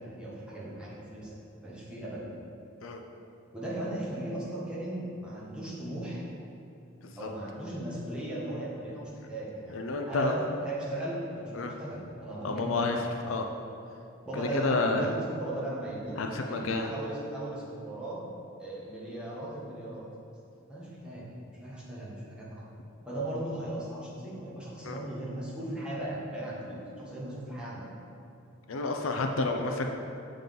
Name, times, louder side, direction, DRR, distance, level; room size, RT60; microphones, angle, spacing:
voice 1, 0.0-1.4 1.6-2.3 3.5-6.2 7.2-9.7 10.1-13.0 14.2-15.1 15.3-18.2 18.6-20.1 20.7-22.7 23.0-27.9, right 1 dB, 5° right, -9 dB, 1.6 m, -37 dB
voice 2, 9.7-10.3 11.5-11.7 12.4-13.0 13.2-13.5 14.4-15.1 16.2-16.9 24.8-25.0 28.7-29.9, left 3 dB, 70° left, 3 dB, 0.5 m, -30 dB
7.4 x 3.8 x 5.3 m, 2.7 s
head